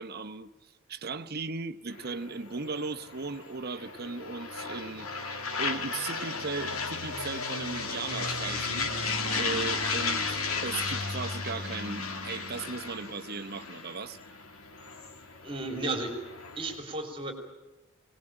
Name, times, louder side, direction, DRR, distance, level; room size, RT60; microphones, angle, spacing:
voice 1, 0.0-5.1 5.6-14.2, right 4 dB, 50° right, 10 dB, 1.0 m, -37 dB
sound 1, 1.9-16.8, left 4 dB, 85° left, 2.3 m, -34 dB
voice 2, 15.4-16.1 16.6-17.3, right 2 dB, 25° right, 4 dB, 3.0 m, -33 dB
22.5 x 19.5 x 8.9 m, 1.0 s
head